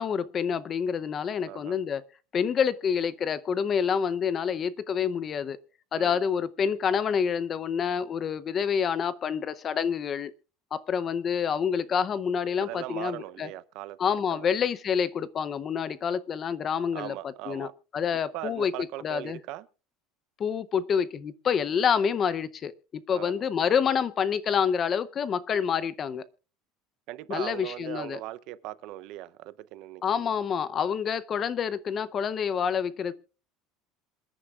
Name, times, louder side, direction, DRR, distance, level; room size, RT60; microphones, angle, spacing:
voice 1, 0.0-2.0 2.3-5.6 5.9-10.3 10.7-13.5 14.0-17.1 17.5-18.7 19.0-19.4 20.4-26.2 27.3-28.2 30.0-33.1, left 7 dB, 25° left, 0.6 m, -27 dB
voice 2, 1.5-1.8 6.0-6.2 12.6-14.0 14.3-14.5 16.9-17.7 18.1-19.7 23.1-23.5 27.1-30.3, right 16 dB, 50° right, 0.6 m, -39 dB
27.0 x 9.9 x 2.4 m
cardioid pair, 175°, 0 cm